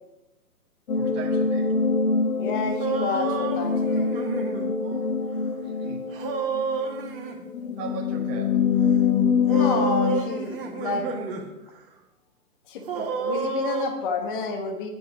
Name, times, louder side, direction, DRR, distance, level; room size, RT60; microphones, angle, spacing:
sound 1, 0.9-10.2, left 5 dB, 60° left, 1.3 m, -25 dB
voice 1, 0.9-1.8 4.8-6.0 6.6-7.0 7.8-8.7, right 6 dB, 20° right, 1 dB, 1.4 m, -41 dB
voice 2, 2.3-4.1 9.5-11.1 12.7-14.9, left 4 dB, 30° left, 5 dB, 1.3 m, -30 dB
sound 2, 2.8-4.7 6.1-7.4 9.5-11.4 11.8-11.9 12.9-13.9, right 5 dB, 35° right, 1.8 m, -30 dB
9.6 x 8.6 x 4.9 m, 0.94 s
figure-of-eight pair, 130°, 47 cm